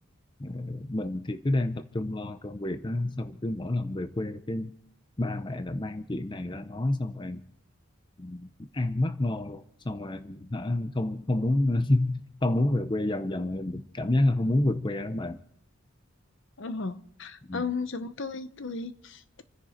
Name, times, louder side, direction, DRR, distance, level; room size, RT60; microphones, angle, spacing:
voice 1, 0.4-4.7 5.2-7.4 8.2-8.4 8.7-9.6 9.9-15.4 17.5-17.6, left 1 dB, 20° left, 0.6 m, -29 dB
voice 2, 16.6-19.4, left 4 dB, 60° left, 0.9 m, -35 dB
29.0 x 10.5 x 4.4 m
head